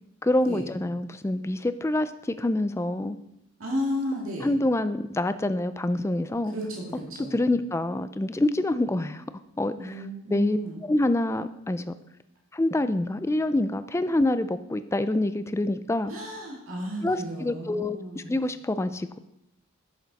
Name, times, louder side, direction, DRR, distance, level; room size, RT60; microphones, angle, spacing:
voice 1, 0.2-3.2 4.4-6.5 7.2-9.2 9.6-9.9 10.3-11.9 12.5-16.1 17.0-19.2, left 1 dB, 10° left, 12 dB, 0.3 m, -26 dB
voice 2, 3.6-4.5 6.5-7.4 9.8-10.8 16.1-18.3, equal, 65° right, -3 dB, 2.2 m, -33 dB
10.5 x 6.6 x 4.1 m, 0.83 s
head